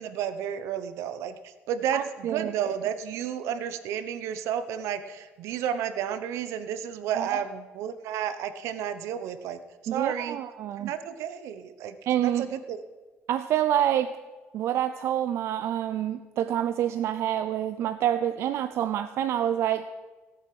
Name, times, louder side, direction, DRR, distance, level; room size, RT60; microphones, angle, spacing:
voice 1, 0.0-9.6 9.9-10.4 10.8-12.8, right 9 dB, 85° right, 12 dB, 0.9 m, -32 dB
voice 2, 1.9-2.5 7.1-7.4 9.9-10.9 12.1-12.4 13.3-14.1 14.5-19.9, right 11 dB, 65° right, 11 dB, 0.5 m, -27 dB
17.0 x 8.1 x 6.0 m, 1.3 s
cardioid pair, 120°, 5 cm